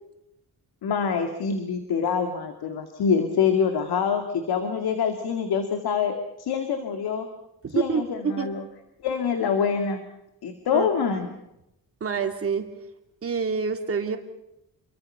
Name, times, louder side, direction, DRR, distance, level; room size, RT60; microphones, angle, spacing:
voice 1, 0.8-7.3 7.7-8.6 9.0-10.0 10.4-11.3, left 6 dB, 80° left, 6 dB, 2.4 m, -25 dB
voice 2, 7.6-8.5 10.7-11.2 12.0-12.7 13.2-14.2, right 5 dB, 35° right, 5 dB, 2.6 m, -27 dB
28.0 x 23.5 x 5.7 m, 0.85 s
wide cardioid pair, 170°, 38 cm